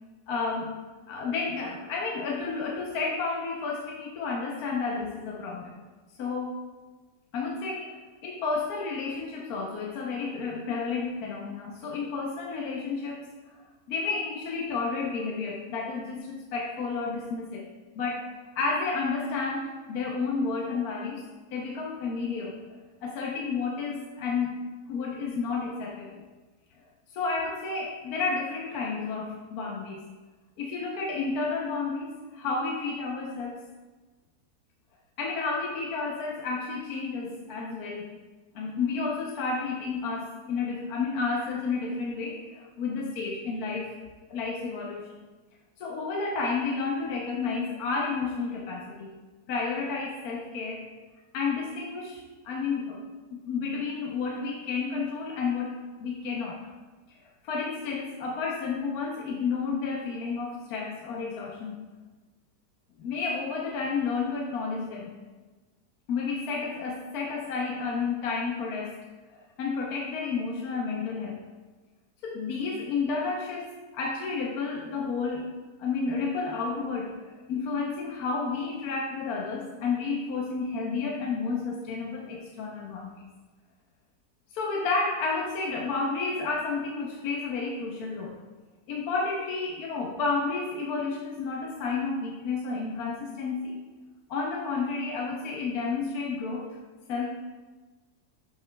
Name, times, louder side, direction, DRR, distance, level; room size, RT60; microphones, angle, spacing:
voice 1, 0.3-5.7 6.2-6.6 7.3-8.0 8.2-13.6 13.9-17.7 17.9-21.2 21.5-22.6 23.0-26.2 27.1-30.0 30.6-33.6 35.2-38.2 38.5-44.0 44.3-45.1 45.8-49.1 49.5-50.9 51.3-53.0 53.3-55.7 56.0-56.7 57.1-57.2 57.4-61.9 63.0-65.2 66.1-69.0 69.6-71.4 72.2-75.5 75.8-83.1 84.5-88.4 88.9-93.8 94.3-96.8 97.1-97.3, left 4 dB, 65° left, 0 dB, 1.2 m, -31 dB
12.0 x 6.8 x 2.2 m, 1.3 s
omnidirectional pair, 1.8 m